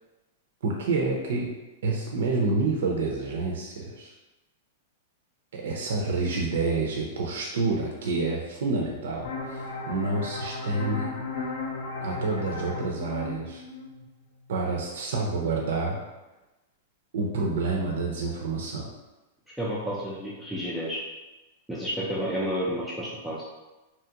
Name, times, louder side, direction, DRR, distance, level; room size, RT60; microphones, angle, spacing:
voice 1, 0.6-1.5 1.8-4.1 5.5-11.1 12.0-13.6 14.5-16.0 17.1-18.9, right 3 dB, 80° right, -1 dB, 0.5 m, -28 dB
sound 1, 9.2-14.6, left 3 dB, 70° left, 0.5 m, -35 dB
voice 2, 19.6-21.0 21.7-23.4, equal, ahead, -8 dB, 0.4 m, -30 dB
2.9 x 2.4 x 2.8 m, 1.1 s
supercardioid pair, 150°, 0 cm